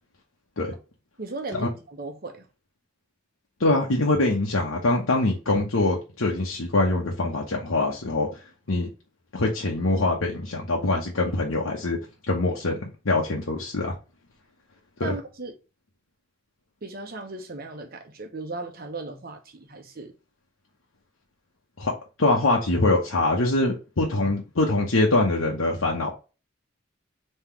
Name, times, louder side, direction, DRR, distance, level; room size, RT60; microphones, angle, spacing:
voice 1, 1.2-2.5 15.0-15.5 16.8-20.1, right 3 dB, 45° right, 1.0 m, -36 dB
voice 2, 3.6-8.3 8.7-8.9 9.3-12.0 12.3-12.8 13.0-13.9 15.0-15.1 21.8-21.9 22.2-26.1, left 2 dB, 85° left, 1.0 m, -23 dB
3.8 x 3.2 x 4.5 m
head